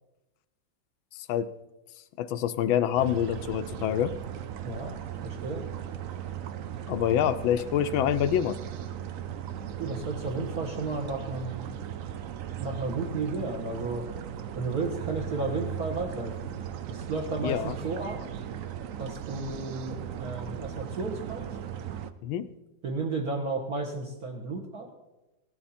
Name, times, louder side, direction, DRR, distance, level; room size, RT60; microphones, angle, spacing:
voice 1, 1.1-1.5 2.2-4.1 6.9-8.6 17.4-17.8 22.2-22.5, left 10 dB, 85° left, 12 dB, 1.4 m, -26 dB
sound 1, 3.0-22.1, right 10 dB, 70° right, 0.7 m, -37 dB
voice 2, 4.6-5.0 5.2-5.6 9.8-11.7 12.6-14.0 14.5-16.5 16.9-18.2 19.0-21.5 22.8-24.9, right 3 dB, 50° right, -1 dB, 1.8 m, -33 dB
17.0 x 12.0 x 4.3 m, 1.0 s
omnidirectional pair, 2.1 m